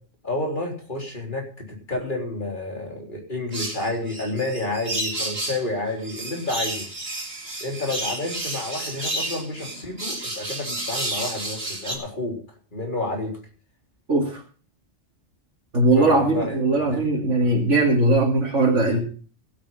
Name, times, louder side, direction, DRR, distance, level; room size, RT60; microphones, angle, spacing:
voice 1, 0.2-6.8 7.6-12.4 12.7-13.4 16.0-16.6 16.8-17.3, left 2 dB, 40° left, 1 dB, 4.1 m, -30 dB
sound 1, 3.5-5.6 6.0-12.0, right 1 dB, 55° right, 3.1 m, -31 dB
voice 2, 14.1-14.4 15.7-19.0, right 2 dB, 85° right, -3 dB, 2.9 m, -20 dB
16.0 x 8.9 x 5.7 m, 0.41 s
omnidirectional pair, 1.2 m